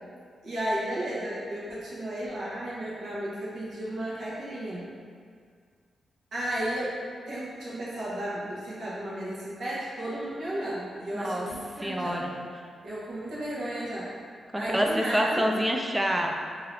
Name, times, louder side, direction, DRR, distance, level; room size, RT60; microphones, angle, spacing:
voice 1, 0.4-4.9 6.3-7.0 7.3-12.2 12.8-14.1 14.5-15.4, right 1 dB, 60° right, -8 dB, 1.1 m, -33 dB
voice 2, 11.1-11.5 11.8-12.3 14.5-16.4, equal, 10° right, 1 dB, 0.3 m, -27 dB
3.8 x 2.8 x 3.3 m, 2.1 s
wide cardioid pair, 160°, 0 cm